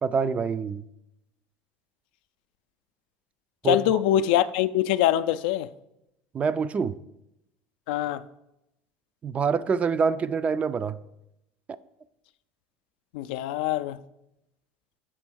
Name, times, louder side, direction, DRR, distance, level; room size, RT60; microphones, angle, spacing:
voice 1, 0.0-0.8 3.6-4.0 6.3-6.9 9.2-11.0, right 5 dB, 30° right, 0.3 m, -26 dB
voice 2, 3.6-5.7 7.9-8.2 13.1-14.0, left 12 dB, 85° left, 0.3 m, -24 dB
7.6 x 3.4 x 6.2 m
supercardioid pair, 115°, 5 cm